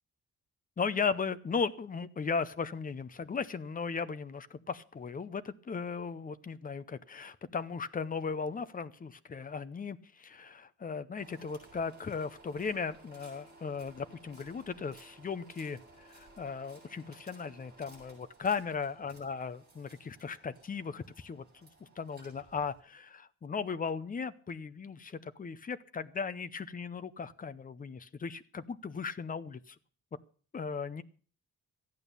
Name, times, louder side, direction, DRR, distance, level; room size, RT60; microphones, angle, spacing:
voice 1, 0.8-21.4 22.0-29.7 30.5-31.0, left 5 dB, 25° left, 13 dB, 0.7 m, -37 dB
sound 1, 11.1-22.8, right 2 dB, 30° right, 6.9 m, -58 dB
14.0 x 9.2 x 6.8 m, 0.43 s
wide cardioid pair, 170°, 32 cm